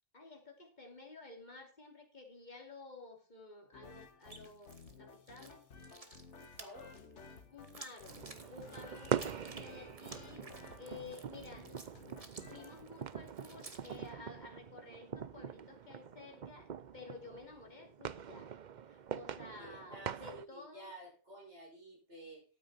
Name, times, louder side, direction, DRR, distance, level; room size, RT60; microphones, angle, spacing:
voice 1, 0.1-5.7 7.5-8.2 8.5-10.4 10.8-11.7 12.2-18.5 18.9-20.9, left 3 dB, 40° left, 3 dB, 2.9 m, -53 dB
sound 1, 3.7-12.8, left 4 dB, 70° left, 1.6 m, -55 dB
sound 2, 4.2-5.0 5.3-14.1, right 3 dB, 30° right, 1.5 m, -54 dB
voice 2, 6.4-7.0 19.6-22.4, right 1 dB, 70° right, -4 dB, 6.1 m, -52 dB
sound 3, 8.1-20.4, right 8 dB, 50° right, 0.6 m, -43 dB
13.0 x 9.3 x 4.1 m, 0.34 s
omnidirectional pair, 1.2 m